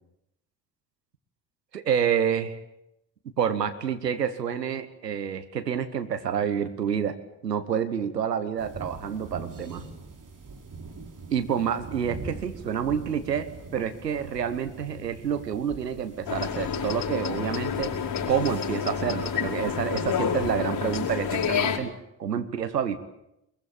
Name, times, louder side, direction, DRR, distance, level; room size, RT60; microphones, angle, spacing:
voice 1, 1.7-2.6 3.4-7.2 7.4-9.8 11.3-17.9 18.3-23.0, right 8 dB, 90° right, 10 dB, 1.2 m, -28 dB
sound 1, 8.6-21.6, right 4 dB, 40° right, 4.0 m, -44 dB
sound 2, 16.3-21.8, left 7 dB, 45° left, 5.2 m, -29 dB
23.5 x 22.0 x 8.9 m, 0.84 s
figure-of-eight pair, 45°, 47 cm